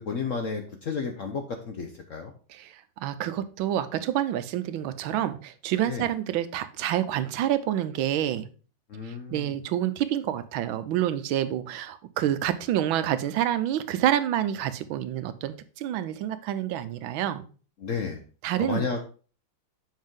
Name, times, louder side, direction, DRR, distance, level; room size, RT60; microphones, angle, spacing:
voice 1, 0.0-2.3 5.9-6.0 8.9-9.5 17.8-18.2 18.6-19.0, left 5 dB, 60° left, 5 dB, 0.8 m, -32 dB
voice 2, 2.5-8.5 9.0-17.4 18.4-18.9, right 11 dB, 85° right, 12 dB, 1.4 m, -28 dB
7.4 x 5.6 x 3.6 m, 0.38 s
omnidirectional pair, 2.2 m